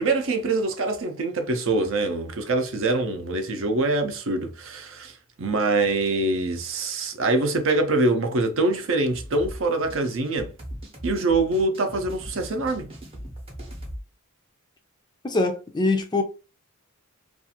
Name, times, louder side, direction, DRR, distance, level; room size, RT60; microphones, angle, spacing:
voice 1, 0.0-5.1 5.4-10.5 11.0-12.9, right 2 dB, 60° right, 0.6 m, -24 dB
sound 1, 9.1-14.0, equal, 25° right, 0.7 m, -39 dB
voice 2, 15.2-16.2, left 2 dB, 20° left, 0.3 m, -23 dB
2.5 x 2.4 x 2.7 m
head